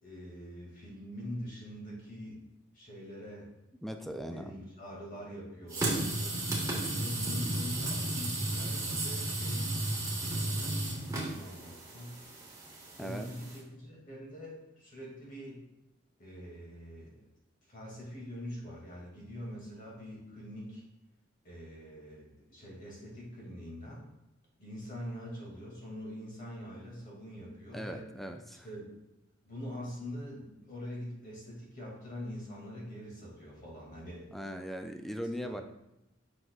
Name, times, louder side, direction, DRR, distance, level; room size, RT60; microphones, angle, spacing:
voice 1, 0.0-2.5 2.7-3.5 4.2-6.4 6.9-9.7 10.2-12.2 13.0-15.6 16.2-17.2 17.7-20.8 21.4-24.1 24.6-28.1 28.6-29.0 29.4-34.3 35.4-35.6, equal, 45° left, -3 dB, 2.2 m, -44 dB
voice 2, 3.8-4.6 13.0-13.3 27.7-28.7 34.3-35.6, equal, ahead, 5 dB, 0.4 m, -39 dB
sound 1, 5.7-13.6, right 1 dB, 15° right, 1.4 m, -34 dB
7.6 x 6.1 x 2.3 m, 0.90 s
head